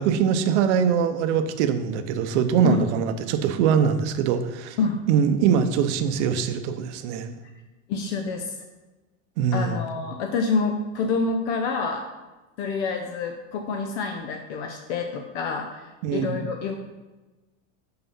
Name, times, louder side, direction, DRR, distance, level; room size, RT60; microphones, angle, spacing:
voice 1, 0.0-4.8 5.1-7.3 9.4-9.8 16.0-16.5, right 7 dB, 60° right, 8 dB, 0.8 m, -23 dB
voice 2, 7.9-8.6 9.5-12.0 12.6-16.7, left 4 dB, 60° left, 4 dB, 0.8 m, -27 dB
5.8 x 5.7 x 5.5 m, 1.2 s
supercardioid pair, 170°, 38 cm